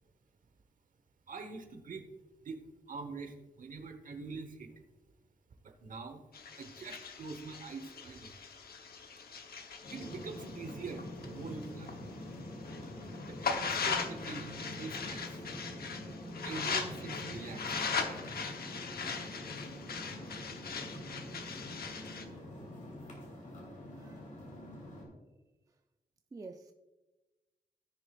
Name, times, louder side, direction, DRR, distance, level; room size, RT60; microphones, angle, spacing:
voice 1, 1.3-2.1 2.4-4.8 5.6-6.2 6.6-8.4 9.9-12.0 13.3-15.4 16.4-17.7, right 4 dB, 55° right, 1.1 m, -44 dB
sound 1, 6.3-12.0 12.4-22.2, left 5 dB, 75° left, 0.9 m, -39 dB
sound 2, 9.8-25.0, left 1 dB, 55° left, 3.0 m, -45 dB
voice 2, 26.3-26.7, right 3 dB, 20° right, 0.4 m, -48 dB
16.0 x 6.7 x 2.4 m
wide cardioid pair, 165°, 16 cm